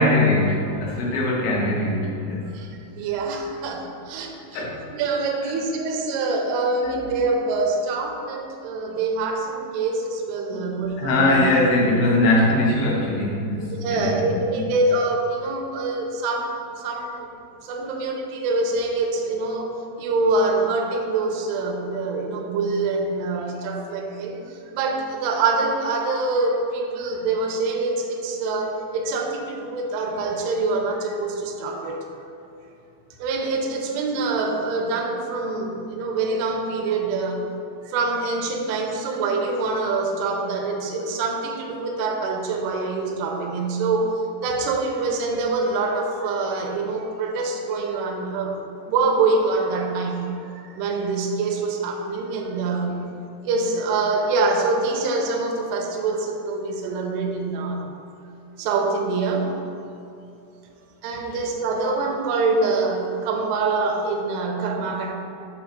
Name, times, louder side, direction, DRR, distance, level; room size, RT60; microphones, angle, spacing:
voice 1, 0.0-2.5 4.5-4.8 6.8-7.0 10.5-14.6 61.3-61.4, left 1 dB, 90° left, -4 dB, 3.7 m, -21 dB
voice 2, 3.0-4.6 4.9-11.4 13.8-17.3 17.6-19.7 20.0-24.4 24.7-32.0 33.2-37.4 37.9-44.1 44.4-48.6 48.9-50.4 50.7-53.1 53.4-57.8 58.6-59.5 61.0-65.1, right 3 dB, 80° right, 1 dB, 2.5 m, -25 dB
8.1 x 2.9 x 5.9 m, 2.8 s
omnidirectional pair, 5.2 m